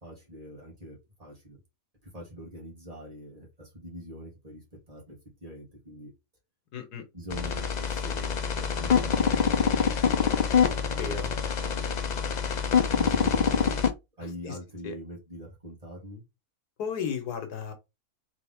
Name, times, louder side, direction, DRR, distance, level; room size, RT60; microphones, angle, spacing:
voice 1, 0.0-1.6 2.0-6.1 7.1-11.2 11.6-12.4 12.9-13.9 14.2-16.2, equal, 25° right, 1.8 m, -44 dB
voice 2, 6.7-7.1 10.9-11.3 14.5-14.6 14.8-15.0 16.8-17.7, left 6 dB, 90° left, 1.6 m, -34 dB
sound 1, 7.3-13.9, left 6 dB, 75° left, 0.4 m, -25 dB
3.9 x 3.5 x 3.5 m
omnidirectional pair, 1.6 m